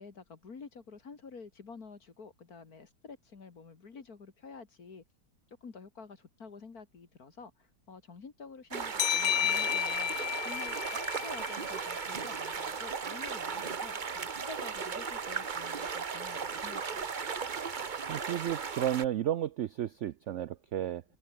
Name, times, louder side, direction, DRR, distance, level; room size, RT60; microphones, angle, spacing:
voice 1, 0.0-5.0 5.6-10.1 10.4-17.1, left 4 dB, 55° left, 2.6 m, -49 dB
sound 1, 8.7-19.0, right 5 dB, 35° right, 0.9 m, -36 dB
sound 2, 9.0-12.3, left 11 dB, 90° left, 1.7 m, -32 dB
voice 2, 18.1-21.0, right 11 dB, 90° right, 0.6 m, -33 dB
omnidirectional pair, 1.9 m